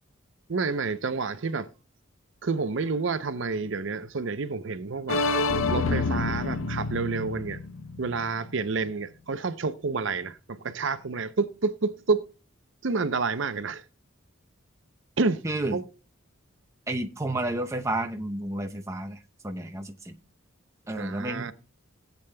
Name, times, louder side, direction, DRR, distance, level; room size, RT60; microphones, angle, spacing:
voice 1, 0.5-1.7 2.4-5.2 5.7-7.6 8.0-12.3 12.8-13.8 15.2-15.4 15.7-15.8 21.0-21.5, right 4 dB, 60° right, 0.6 m, -29 dB
sound 1, 5.1-8.9, left 3 dB, 70° left, 0.6 m, -28 dB
voice 2, 15.4-15.8 16.9-20.2 20.9-21.5, right 1 dB, 15° right, 0.7 m, -31 dB
17.5 x 8.3 x 2.2 m
head